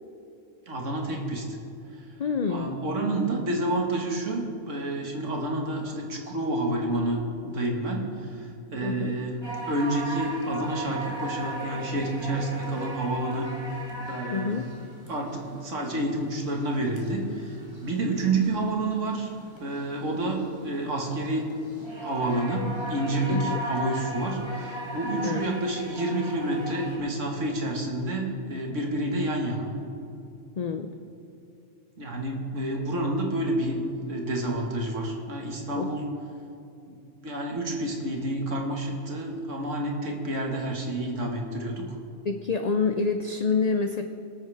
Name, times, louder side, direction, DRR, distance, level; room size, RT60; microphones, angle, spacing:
voice 1, 0.7-1.5 2.5-9.4 9.7-13.5 14.1-14.6 15.1-17.6 17.8-19.3 19.6-21.5 22.0-29.7 32.0-33.8 34.1-36.0 36.9-37.0 37.2-42.0, right 1 dB, 80° right, 1 dB, 2.1 m, -29 dB
voice 2, 2.2-2.9 8.8-9.2 14.3-14.7 23.3-23.6 25.2-25.5 30.6-30.9 35.8-35.9 42.2-44.0, left 5 dB, 45° left, 7 dB, 0.5 m, -27 dB
sound 1, 9.4-27.0, right 1 dB, 20° right, 2.0 m, -38 dB
22.0 x 9.1 x 3.5 m, 2.6 s
omnidirectional pair, 1.3 m